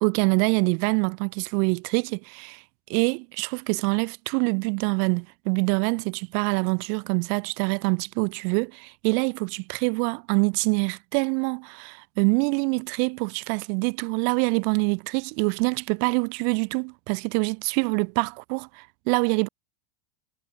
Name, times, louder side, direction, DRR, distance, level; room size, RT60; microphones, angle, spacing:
voice 1, 0.0-2.6 2.9-19.5, right 40 dB or more, 55° right, 2.2 m, -25 dB
supercardioid pair, 135°, 4 cm